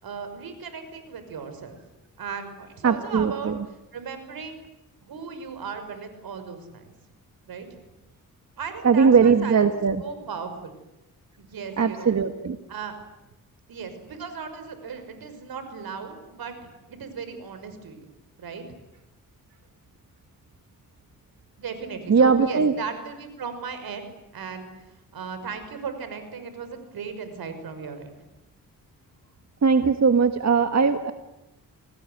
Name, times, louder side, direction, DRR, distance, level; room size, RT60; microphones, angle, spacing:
voice 1, 0.0-1.8 2.2-3.5 3.9-4.6 5.1-6.9 7.5-7.7 8.6-9.7 10.0-10.8 11.4-12.1 12.7-12.9 13.7-18.1 18.4-18.6 21.6-24.0 24.3-24.9 25.1-28.2, right 6 dB, 80° right, 9 dB, 5.8 m, -36 dB
voice 2, 2.8-3.6 8.8-10.0 11.8-12.6 22.1-22.7 29.6-31.1, right 5 dB, 50° right, 8 dB, 1.8 m, -19 dB
29.5 x 20.0 x 9.5 m, 0.95 s
cardioid pair, 80°, 36 cm